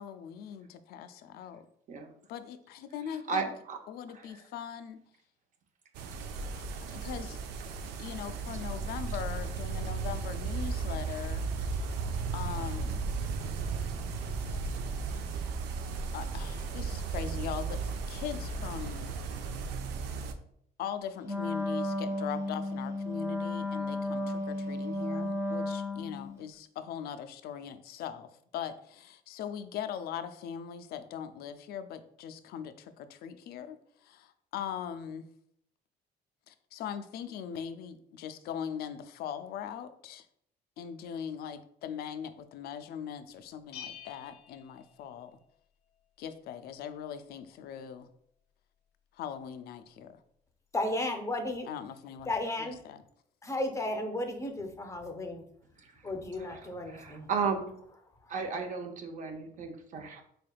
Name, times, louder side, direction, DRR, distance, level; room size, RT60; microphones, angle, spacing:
voice 1, 0.0-1.7 2.3-3.5 3.9-5.0 6.6-7.4 8.0-11.5 12.3-13.1 15.4-15.8 16.1-19.1 20.8-35.3 36.5-40.3 40.8-45.3 46.2-48.1 49.1-50.2 51.7-52.3 52.6-53.0, left 8 dB, 70° left, 10 dB, 0.4 m, -40 dB
voice 2, 3.3-3.8 4.1-4.4 6.2-6.6 6.9-7.0 55.8-56.0 56.5-56.6 56.9-57.7 58.3-60.2, right 5 dB, 50° right, 4 dB, 0.6 m, -35 dB
sound 1, 5.9-20.3, right 4 dB, 90° right, 0.4 m, -35 dB
Wind instrument woodwind instrument, 21.2-26.4, left 2 dB, 20° right, 0.8 m, -33 dB
Bell, 43.7-45.6, left 9 dB, 90° left, 0.8 m, -48 dB
voice 3, 50.7-51.7 52.3-52.8 53.4-55.4 56.0-57.3 58.2-58.3, left 1 dB, 15° left, 4 dB, 0.6 m, -34 dB
3.8 x 3.4 x 2.3 m, 0.67 s
cardioid pair, 110°, 17 cm